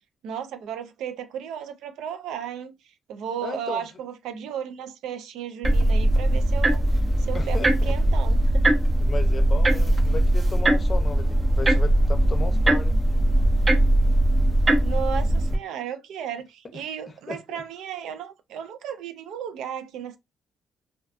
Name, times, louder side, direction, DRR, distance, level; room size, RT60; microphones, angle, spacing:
voice 1, 0.2-2.8 3.1-8.6 14.8-20.2, right 8 dB, 85° right, 0.4 m, -34 dB
voice 2, 3.4-3.8 7.3-8.0 9.0-13.0 16.7-16.8 17.3-17.6, left 3 dB, 35° left, 0.6 m, -35 dB
sound 1, 5.6-15.6, right 1 dB, 25° right, 0.6 m, -20 dB
2.5 x 2.2 x 2.4 m
cardioid pair, 90°, 0 cm